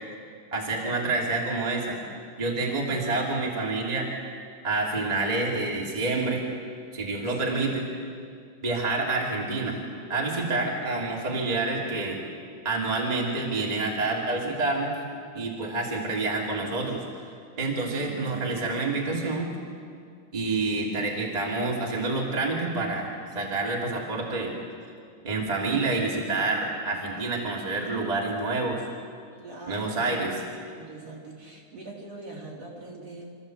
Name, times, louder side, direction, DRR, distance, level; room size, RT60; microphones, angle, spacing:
voice 1, 0.5-2.0 2.4-4.1 4.6-6.5 6.9-7.8 8.6-9.8 10.1-12.2 12.6-15.0 15.3-17.0 17.6-19.5 20.3-24.5 25.2-28.8 29.7-30.3, right 3 dB, 15° right, -2 dB, 2.3 m, -28 dB
voice 2, 7.3-7.7 17.9-18.7 29.4-33.3, right 2 dB, 50° right, -3 dB, 4.3 m, -43 dB
25.5 x 14.0 x 7.8 m, 2.2 s
omnidirectional pair, 3.7 m